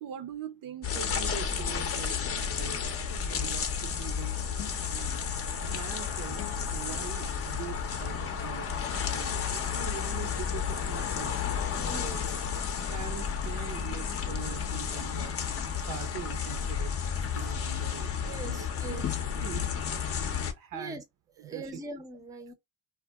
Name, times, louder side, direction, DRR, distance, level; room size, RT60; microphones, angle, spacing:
voice 1, 0.0-2.9 3.3-4.4 4.8-5.3 5.6-11.4 11.9-12.0 12.9-17.0 17.3-19.1 19.4-19.7 20.5-21.0 21.4-21.8, right 10 dB, 60° right, 0.6 m, -43 dB
sound 1, 0.8-20.5, left 7 dB, 40° left, 0.6 m, -32 dB
voice 2, 11.8-12.2 15.2-15.3 18.2-19.1 20.7-21.0 21.4-22.5, right 2 dB, 10° right, 0.5 m, -41 dB
2.2 x 2.2 x 3.3 m
cardioid pair, 100°, 38 cm